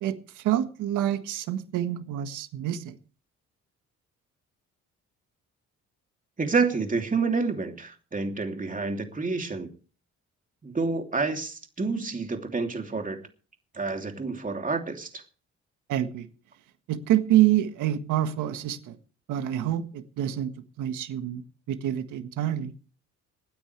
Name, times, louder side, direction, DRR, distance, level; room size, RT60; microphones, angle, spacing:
voice 1, 0.0-2.9 15.9-16.3 16.9-19.0 19.3-20.5 20.8-21.4 21.7-22.7, right 12 dB, 90° right, 1.6 m, -26 dB
voice 2, 6.4-9.7 10.6-13.2 13.7-15.2, right 4 dB, 25° right, 3.0 m, -28 dB
25.5 x 9.8 x 3.3 m
cardioid pair, 90°, 30 cm